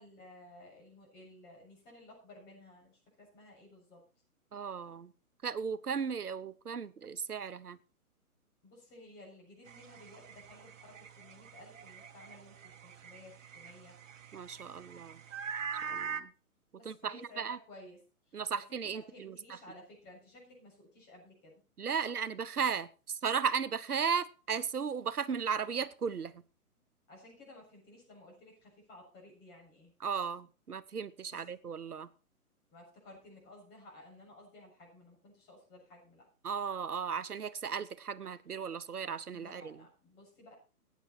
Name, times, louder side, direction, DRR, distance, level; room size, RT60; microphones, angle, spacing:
voice 1, 0.0-4.0 8.6-14.0 16.8-18.0 18.3-21.5 22.0-22.1 27.1-29.9 31.3-31.5 32.7-36.3 39.3-40.5, left 1 dB, 25° left, 7.0 m, -55 dB
voice 2, 4.5-5.1 5.4-7.8 14.3-15.2 15.8-16.3 16.8-17.6 18.3-19.6 21.8-26.4 30.0-32.1 36.4-39.8, right 6 dB, 85° right, 1.0 m, -36 dB
sound 1, 9.7-16.2, right 6 dB, 60° right, 1.3 m, -44 dB
15.5 x 9.4 x 4.5 m
figure-of-eight pair, 135°, 44 cm